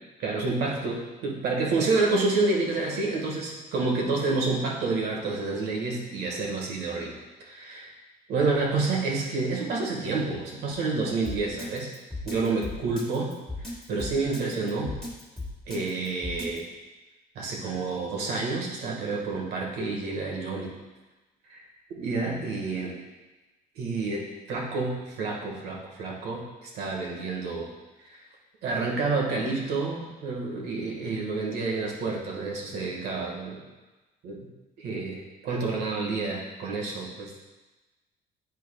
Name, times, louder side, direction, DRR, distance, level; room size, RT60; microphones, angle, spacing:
voice 1, 0.2-7.9 8.3-11.9 12.2-13.3 13.6-15.0 15.7-16.7 17.3-20.7 21.5-21.6 21.9-22.9 23.7-24.2 24.5-27.7 28.0-28.2 28.6-33.6 34.2-34.4 34.8-37.4, right 3 dB, 75° right, -1 dB, 1.5 m, -29 dB
Drum kit, 11.2-16.6, left 2 dB, ahead, 1.7 m, -36 dB
9.2 x 4.7 x 2.2 m, 1.2 s
cardioid pair, 110°, 17 cm